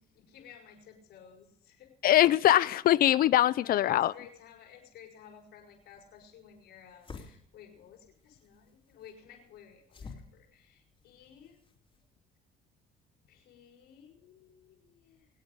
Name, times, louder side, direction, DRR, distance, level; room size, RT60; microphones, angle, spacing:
voice 1, 0.1-1.9 2.6-2.8 3.6-11.6 13.3-15.3, left 8 dB, 80° left, 6.2 m, -54 dB
voice 2, 2.0-4.1, left 13 dB, 60° left, 0.5 m, -22 dB
sound 1, 5.7-12.1, left 4 dB, 30° left, 3.5 m, -52 dB
25.5 x 8.7 x 5.2 m
cardioid pair, 110°, 17 cm